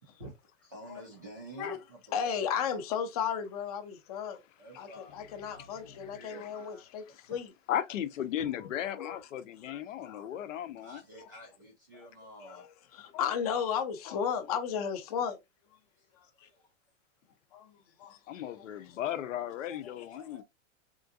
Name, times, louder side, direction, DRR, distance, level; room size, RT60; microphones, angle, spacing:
voice 1, 0.2-2.4 4.6-7.4 10.0-10.3 10.8-12.7 16.0-16.7 17.9-18.0 19.0-20.2, right 1 dB, 15° right, 0.3 m, -51 dB
voice 2, 2.1-4.4 4.8-7.5 9.0-9.2 9.7-10.3 12.4-12.7 12.9-15.4 17.5-18.2 18.5-18.8 20.1-20.4, left 7 dB, 30° left, 0.5 m, -34 dB
voice 3, 6.0-6.5 7.7-11.0 16.4-16.5 18.3-20.4, left 11 dB, 85° left, 0.7 m, -36 dB
3.7 x 2.5 x 2.5 m
supercardioid pair, 170°, 37 cm